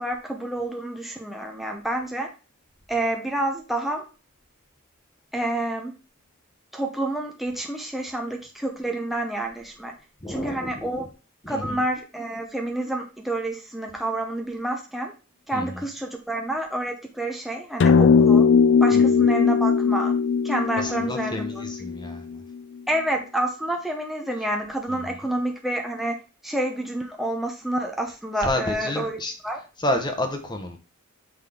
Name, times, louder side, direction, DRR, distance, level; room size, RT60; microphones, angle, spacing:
voice 1, 0.0-2.3 2.9-4.1 5.3-5.9 6.7-9.9 10.3-11.1 11.5-15.1 15.5-18.5 18.8-20.1 20.4-21.6 22.9-29.2 29.4-29.6, right 1 dB, ahead, 0.7 m, -29 dB
voice 2, 10.2-11.1 11.4-11.8 15.5-15.8 18.9-19.3 20.8-22.4 24.9-25.3 28.4-29.3 29.8-30.8, left 1 dB, 20° left, 1.0 m, -30 dB
sound 1, 17.8-22.3, left 5 dB, 55° left, 0.4 m, -19 dB
6.0 x 5.1 x 3.7 m
head